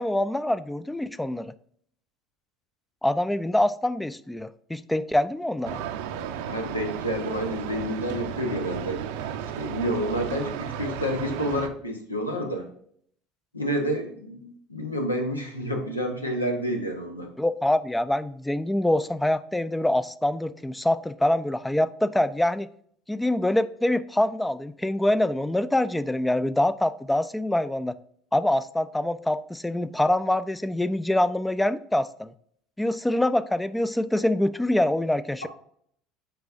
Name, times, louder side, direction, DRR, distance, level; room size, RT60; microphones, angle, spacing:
voice 1, 0.0-1.5 3.0-5.8 17.4-22.7 23.1-27.9 28.3-32.3 32.8-35.5, left 1 dB, 5° left, 14 dB, 0.3 m, -25 dB
sound 1, 5.6-11.7, right 9 dB, 65° right, 0.5 m, -34 dB
voice 2, 6.5-9.0 9.6-12.7 13.5-17.3, equal, 90° left, 3 dB, 1.0 m, -29 dB
7.8 x 5.2 x 2.5 m, 0.63 s
figure-of-eight pair, 65°, 0 cm